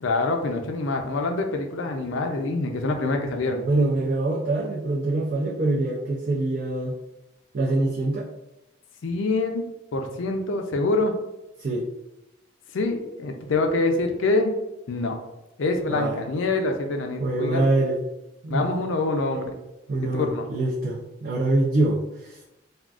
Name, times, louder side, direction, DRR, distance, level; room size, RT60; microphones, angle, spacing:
voice 1, 0.0-3.6 9.0-9.6 9.9-11.1 12.7-14.5 14.9-15.2 15.6-17.6 18.5-19.5 20.1-20.4, left 2 dB, 75° left, 4 dB, 0.4 m, -25 dB
voice 2, 3.6-6.9 7.5-8.3 11.6-11.9 15.9-16.2 17.2-18.1 18.4-18.7 19.9-22.4, right 2 dB, 50° right, -4 dB, 0.4 m, -24 dB
3.5 x 2.3 x 2.4 m, 0.93 s
head